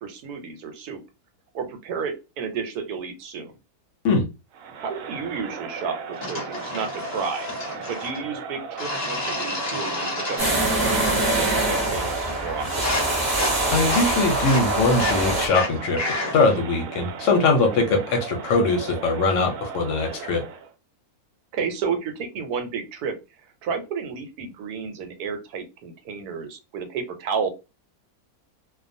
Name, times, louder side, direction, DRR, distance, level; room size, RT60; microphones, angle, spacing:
voice 1, 0.0-1.0 1.5-3.5 4.8-7.5 7.9-10.4 11.4-12.9 17.7-18.0 21.5-23.1 23.6-27.5, right 6 dB, 85° right, 6 dB, 1.2 m, -31 dB
Crowd, 4.5-20.7, right 6 dB, 70° right, 0.9 m, -37 dB
sound 1, 6.2-8.2 8.8-11.2 11.5-12.0 12.3-16.6, left 2 dB, 35° left, 0.8 m, -31 dB
sound 2, 10.4-15.5, right 2 dB, 20° right, 0.6 m, -24 dB
voice 2, 13.7-16.0 16.3-20.4, left 3 dB, 65° left, 4 dB, 0.8 m, -21 dB
2.4 x 2.2 x 2.6 m, 0.27 s
omnidirectional pair, 1.6 m